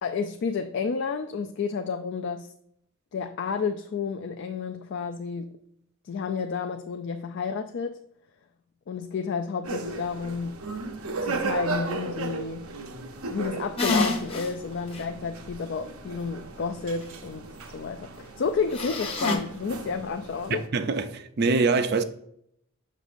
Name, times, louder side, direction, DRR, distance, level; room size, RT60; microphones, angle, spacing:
voice 1, 0.0-2.5 3.1-5.5 6.0-8.0 8.9-10.5 11.2-12.7 13.3-20.7, left 5 dB, 55° left, 0.3 m, -31 dB
sound 1, 9.6-20.7, right 3 dB, 80° right, 0.8 m, -36 dB
sound 2, 13.8-14.5 14.9-15.0 18.7-19.4, left 2 dB, 25° left, 0.8 m, -26 dB
voice 2, 20.5-22.0, right 4 dB, 45° right, 0.4 m, -24 dB
6.5 x 6.2 x 2.5 m
head